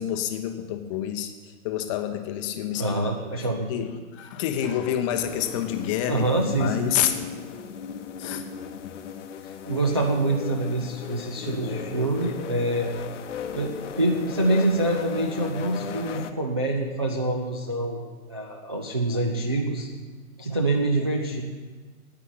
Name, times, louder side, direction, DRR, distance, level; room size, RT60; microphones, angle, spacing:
voice 1, 0.0-1.3 1.6-3.0 3.7-7.1 8.2-8.5, left 10 dB, 20° left, 7 dB, 0.7 m, -28 dB
voice 2, 2.8-3.9 6.1-6.9 9.4-12.9 13.5-18.0 18.3-19.9 20.4-21.4, right 2 dB, 20° right, -2 dB, 0.3 m, -26 dB
sound 1, 5.1-16.3, left 7 dB, 50° left, 0.9 m, -36 dB
10.0 x 9.1 x 8.1 m, 1.4 s
figure-of-eight pair, 125°, 45 cm